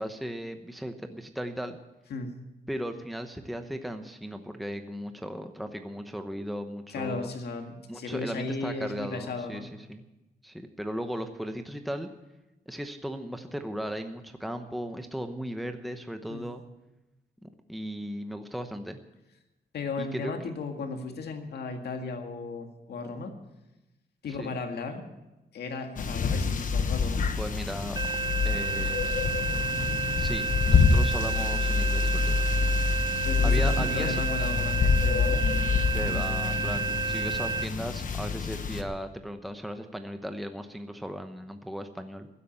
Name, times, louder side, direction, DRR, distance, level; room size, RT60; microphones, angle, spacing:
voice 1, 0.0-1.8 2.7-7.3 7.9-10.0 10.4-12.1 12.7-16.6 17.4-19.0 20.0-20.3 24.3-24.6 27.4-28.0 28.4-29.0 30.2-32.5 33.4-34.2 35.9-42.3, equal, ahead, 7 dB, 0.9 m, -36 dB
voice 2, 6.9-9.7 16.3-16.5 19.7-23.3 24.2-25.1 25.5-27.2 32.9-35.5, left 3 dB, 80° left, 4 dB, 1.9 m, -35 dB
sound 1, 26.0-38.8, left 5 dB, 55° left, 1.3 m, -26 dB
sound 2, 28.0-37.7, right 5 dB, 25° right, 0.4 m, -31 dB
15.5 x 8.4 x 8.8 m, 1.0 s
wide cardioid pair, 130°, 17 cm